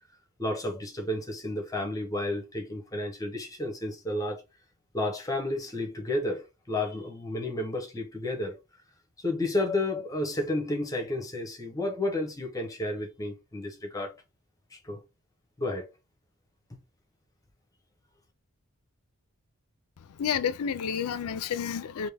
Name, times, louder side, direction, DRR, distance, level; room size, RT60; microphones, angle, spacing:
voice 1, 0.4-4.4 4.9-8.6 9.2-14.1 14.7-15.0 15.6-15.9, left 1 dB, 15° left, 0.7 m, -31 dB
voice 2, 20.2-22.1, left 7 dB, 80° left, 0.4 m, -30 dB
3.4 x 2.5 x 3.3 m
head